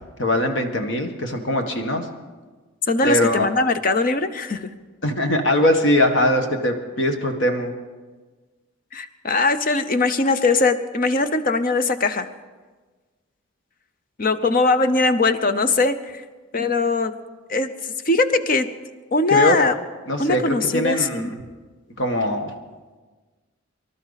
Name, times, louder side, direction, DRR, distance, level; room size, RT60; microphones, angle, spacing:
voice 1, 0.2-2.0 3.0-3.5 5.0-7.7 19.3-19.6 20.1-21.4 22.0-22.5, left 1 dB, 60° left, 5 dB, 1.5 m, -21 dB
voice 2, 2.9-4.7 8.9-12.3 14.2-16.2 16.5-17.1 17.5-18.7 19.1-19.7 20.2-21.3, left 3 dB, 40° left, 11 dB, 0.7 m, -21 dB
24.5 x 12.0 x 4.1 m, 1.3 s
head